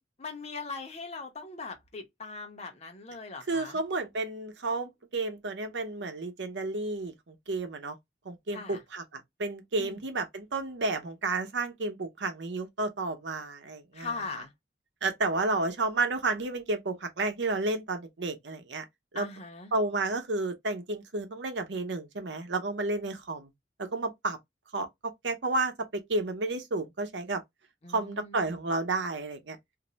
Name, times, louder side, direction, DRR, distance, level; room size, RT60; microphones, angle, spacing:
voice 1, 0.2-3.8 8.5-8.8 9.8-10.0 13.9-14.5 19.1-19.7 27.8-28.5, left 4 dB, 35° left, 0.8 m, -40 dB
voice 2, 3.5-8.0 8.2-14.4 15.0-18.8 19.1-19.3 19.7-23.5 23.8-24.4 24.7-27.4 27.9-29.6, right 2 dB, 80° right, 0.7 m, -31 dB
2.6 x 2.1 x 3.9 m
head